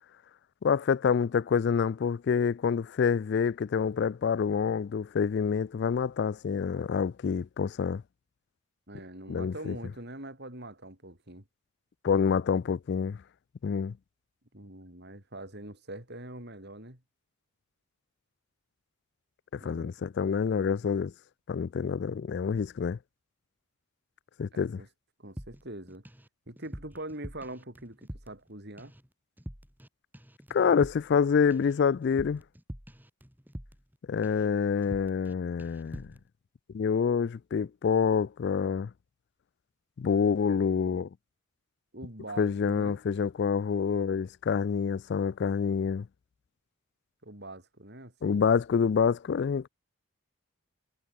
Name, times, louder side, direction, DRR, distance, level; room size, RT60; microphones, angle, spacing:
voice 1, 0.6-8.0 9.3-9.8 12.0-13.2 13.6-13.9 19.5-21.1 21.5-23.0 24.4-24.8 30.5-32.4 34.1-36.1 36.7-38.9 40.0-41.1 42.4-46.0 48.2-49.7, left 6 dB, 50° left, 0.3 m, -27 dB
voice 2, 8.9-11.4 14.5-17.0 19.6-20.1 24.5-24.9 25.2-26.1 26.5-28.9 41.9-43.0 47.2-48.5, right 1 dB, 50° right, 5.7 m, -43 dB
sound 1, 25.4-26.3 26.6-28.5 28.8-29.1 29.4-29.9 30.1-34.0 34.2-34.5 34.8-35.3 35.6-36.2, equal, 10° right, 3.9 m, -45 dB
head